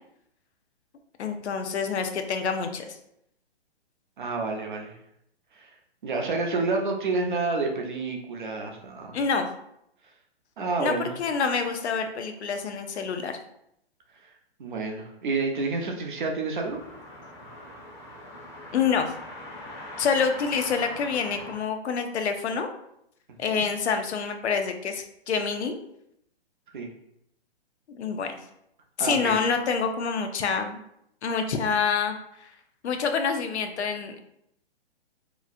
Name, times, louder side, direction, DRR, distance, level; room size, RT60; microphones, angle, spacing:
voice 1, 1.2-3.0 9.1-9.5 10.8-13.4 18.7-19.1 20.0-22.7 23.4-25.8 27.9-28.4 29.0-30.8 31.2-32.5 32.8-34.2, left 5 dB, 90° left, 6 dB, 0.6 m, -27 dB
voice 2, 4.2-4.9 5.5-5.7 6.0-9.2 10.6-11.1 14.6-16.8 23.5-23.7 26.7-26.9 29.0-29.5, right 3 dB, 50° right, 2 dB, 0.6 m, -29 dB
sound 1, 16.6-21.5, left 1 dB, 25° left, 0.6 m, -41 dB
2.9 x 2.6 x 2.4 m, 0.76 s
hypercardioid pair, 165°, 32 cm